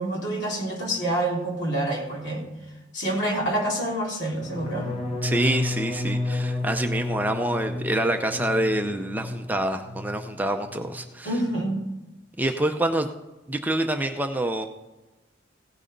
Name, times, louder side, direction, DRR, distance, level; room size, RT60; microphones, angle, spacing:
voice 1, 0.0-2.4 2.9-4.9 5.3-5.4 11.2-11.9, right 1 dB, 65° left, -3 dB, 3.5 m, -27 dB
sound 1, 4.4-10.3 10.6-11.1 11.4-11.8, left 2 dB, 30° left, 1.1 m, -31 dB
voice 2, 5.2-11.3 12.4-13.1 13.5-14.7, right 1 dB, 10° right, 5 dB, 0.6 m, -26 dB
16.5 x 6.2 x 5.2 m, 1.1 s
head